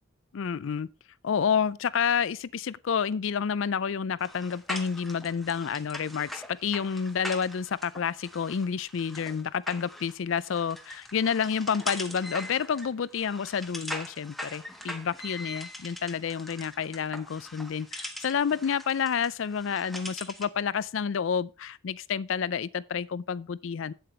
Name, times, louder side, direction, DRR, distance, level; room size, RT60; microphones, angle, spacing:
voice 1, 0.3-0.9 1.2-23.9, left 7 dB, 70° left, 0.4 m, -29 dB
sound 1, 4.2-20.6, equal, ahead, 0.8 m, -42 dB
8.5 x 7.8 x 4.3 m
head